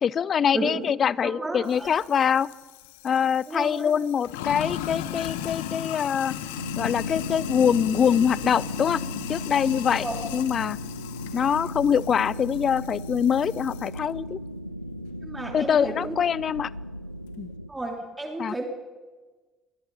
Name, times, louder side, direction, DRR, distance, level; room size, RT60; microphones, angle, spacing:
voice 1, 0.0-2.5 3.0-6.4 6.8-9.0 9.3-10.1 10.3-10.8 11.3-14.4 15.5-16.7 17.4-17.5 18.4-18.6, left 8 dB, 40° left, 23 dB, 0.6 m, -24 dB
voice 2, 1.2-1.9 3.5-3.9 10.0-10.2 15.2-16.1 17.7-18.7, right 2 dB, 15° right, 2 dB, 3.1 m, -32 dB
Sink (filling or washing), 1.7-14.0, left 11 dB, 65° left, 1.3 m, -36 dB
sound 1, 6.6-17.7, equal, 90° left, 0.7 m, -37 dB
28.0 x 21.5 x 5.5 m, 1.3 s
figure-of-eight pair, 55°, 0 cm